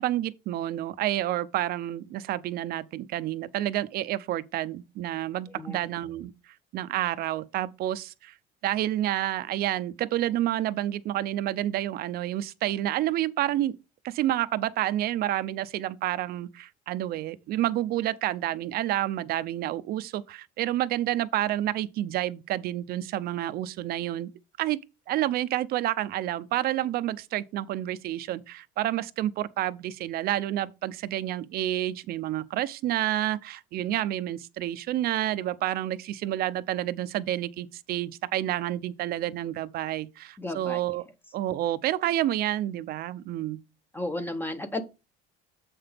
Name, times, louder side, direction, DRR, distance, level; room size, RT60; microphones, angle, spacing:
voice 1, 0.0-6.3 6.7-8.3 8.6-13.8 14.0-24.3 24.6-24.8 25.1-41.1 41.3-43.6, right 13 dB, 50° right, 0.6 m, -29 dB
voice 2, 40.4-40.8 43.9-44.8, left 2 dB, 10° left, 0.7 m, -33 dB
7.8 x 5.8 x 3.4 m
cardioid pair, 155°, 20 cm